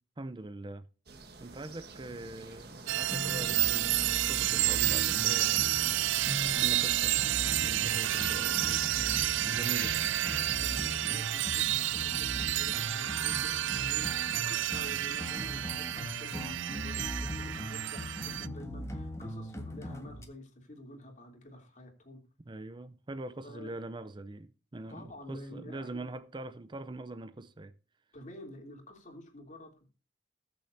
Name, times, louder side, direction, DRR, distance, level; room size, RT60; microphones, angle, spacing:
voice 1, 0.2-0.8 1.4-5.9 6.3-7.2 7.6-10.1 22.4-27.7, right 2 dB, 25° right, 0.5 m, -43 dB
sound 1, 1.1-10.5, right 4 dB, 55° right, 1.5 m, -47 dB
sound 2, 2.9-18.5, right 15 dB, 90° right, 0.4 m, -30 dB
sound 3, 3.0-20.3, left 1 dB, 15° left, 1.5 m, -40 dB
voice 2, 8.0-8.3 10.6-22.2 23.4-23.7 24.9-26.0 28.1-29.9, left 1 dB, 40° left, 3.1 m, -49 dB
20.0 x 7.1 x 2.7 m
head